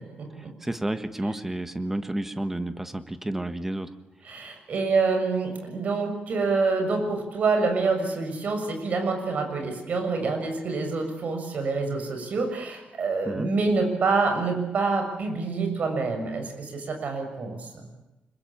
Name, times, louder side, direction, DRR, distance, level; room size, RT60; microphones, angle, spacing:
voice 1, 0.3-3.9 13.2-13.5, right 1 dB, 10° right, 10 dB, 1.5 m, -31 dB
voice 2, 4.2-17.8, right 4 dB, 55° right, 5 dB, 6.7 m, -26 dB
26.0 x 22.5 x 8.7 m, 1.0 s
wide cardioid pair, 150°, 3 cm